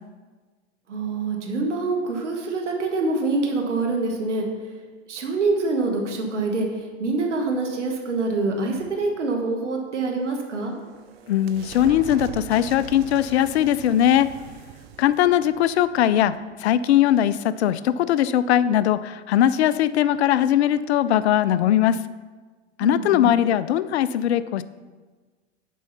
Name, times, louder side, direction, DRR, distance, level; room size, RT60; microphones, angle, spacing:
voice 1, 0.9-4.4 5.1-10.7 22.8-23.3, right 3 dB, 85° right, 1 dB, 1.3 m, -25 dB
sound 1, 10.4-16.8, right 9 dB, 60° right, 0.7 m, -42 dB
voice 2, 11.3-14.3 15.0-22.0 22.8-24.6, left 11 dB, 70° left, 15 dB, 0.5 m, -20 dB
7.3 x 4.6 x 5.6 m, 1.4 s
hypercardioid pair, 105°, 35 cm